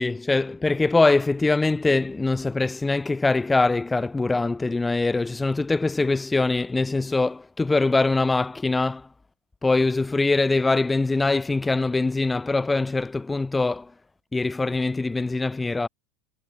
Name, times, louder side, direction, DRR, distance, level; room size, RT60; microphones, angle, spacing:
voice 1, 0.0-9.1 9.6-13.9 14.3-15.9, left 3 dB, 10° left, 2.2 m, -23 dB
supercardioid pair, 120°, 0 cm